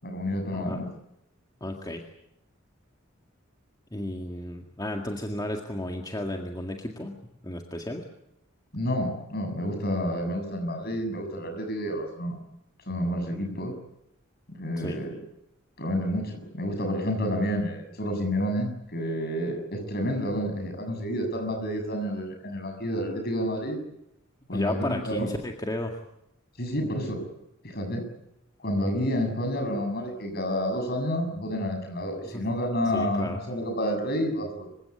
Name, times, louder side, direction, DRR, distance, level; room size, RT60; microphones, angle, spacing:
voice 1, 0.0-0.9 8.7-12.4 12.9-13.8 14.5-15.2 15.8-23.8 24.5-25.3 26.6-27.2 27.6-28.0 28.6-34.7, equal, 50° left, 5 dB, 7.2 m, -29 dB
voice 2, 1.6-2.0 3.9-7.2 7.4-8.0 14.8-15.0 24.5-26.0 32.3-32.4 32.9-33.4, left 1 dB, 20° left, 2 dB, 2.0 m, -33 dB
27.0 x 16.5 x 9.9 m, 0.84 s
head